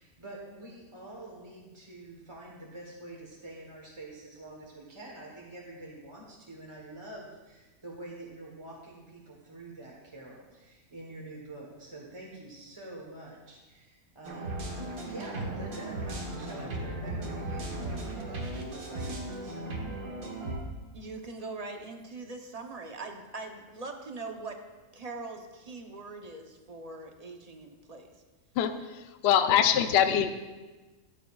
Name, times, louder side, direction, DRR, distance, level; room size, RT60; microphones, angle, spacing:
voice 1, 0.0-14.6 15.0-19.9, right 2 dB, 20° right, -3 dB, 1.1 m, -46 dB
sound 1, 14.2-20.6, right 1 dB, 75° right, 1.7 m, -36 dB
voice 2, 20.9-24.6 24.9-28.2 29.8-30.2, right 3 dB, 40° right, 4 dB, 0.6 m, -42 dB
voice 3, 28.6-30.3, left 9 dB, 65° left, 8 dB, 0.6 m, -24 dB
14.0 x 9.3 x 2.3 m, 1.2 s
omnidirectional pair, 1.5 m